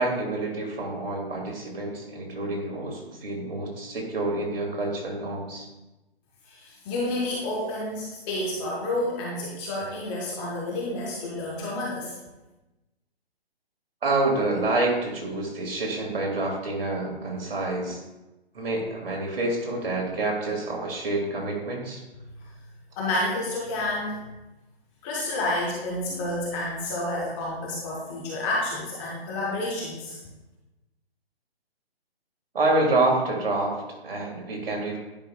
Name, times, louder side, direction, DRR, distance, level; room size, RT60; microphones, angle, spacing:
voice 1, 0.0-5.7 14.0-18.0 18.5-22.0 32.5-35.0, right 2 dB, 65° right, 0 dB, 2.1 m, -27 dB
voice 2, 6.5-12.2 23.0-24.3 25.0-30.2, left 1 dB, 15° left, -4 dB, 0.6 m, -30 dB
10.0 x 5.3 x 2.3 m, 1.0 s
hypercardioid pair, 145°, 32 cm